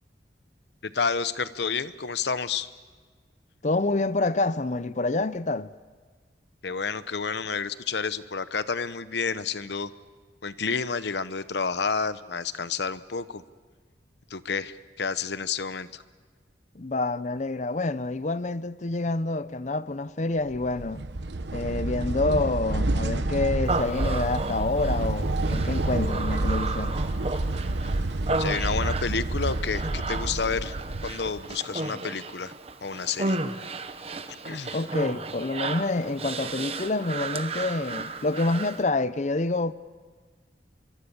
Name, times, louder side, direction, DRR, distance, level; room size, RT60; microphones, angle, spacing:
voice 1, 0.8-2.7 6.6-9.9 10.4-13.4 14.3-16.0 28.4-30.8 31.0-32.5 32.8-33.4 34.4-34.8, left 5 dB, 70° left, 0.9 m, -30 dB
voice 2, 3.6-5.7 16.7-21.1 21.5-27.0 34.7-39.7, left 2 dB, 40° left, 0.7 m, -27 dB
sound 1, 20.5-31.5, right 2 dB, 75° right, 1.0 m, -29 dB
Human voice, 23.7-38.8, right 3 dB, 35° right, 1.1 m, -34 dB
25.5 x 23.5 x 7.1 m
head